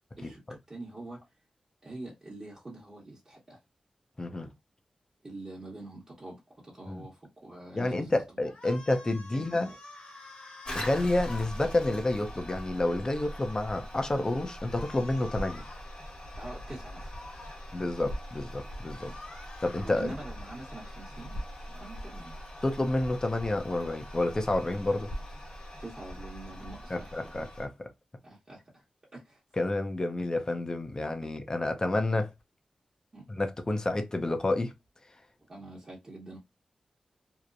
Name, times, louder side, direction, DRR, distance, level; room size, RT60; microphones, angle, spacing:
voice 1, 0.7-1.2 1.8-3.6 5.2-8.1 8.7-8.8 9.3-9.8 16.4-17.1 19.1-19.2 19.8-21.4 21.7-22.4 25.8-27.1 28.2-28.8 29.1-29.4 33.1-33.2 35.5-36.4, right 2 dB, 40° right, 1.0 m, -45 dB
voice 2, 4.2-4.5 6.9-7.1 7.8-9.7 10.7-15.6 17.7-19.1 19.6-20.1 22.6-25.1 26.9-27.9 29.6-32.3 33.3-34.7, left 2 dB, 30° left, 0.6 m, -29 dB
sound 1, 8.5-11.5 14.6-15.8 17.0-17.6 18.7-19.9, left 2 dB, 80° left, 1.1 m, -48 dB
Toilet flush, 10.6-27.7, equal, 50° left, 1.2 m, -41 dB
2.8 x 2.1 x 2.4 m
cardioid pair, 60°, 2 cm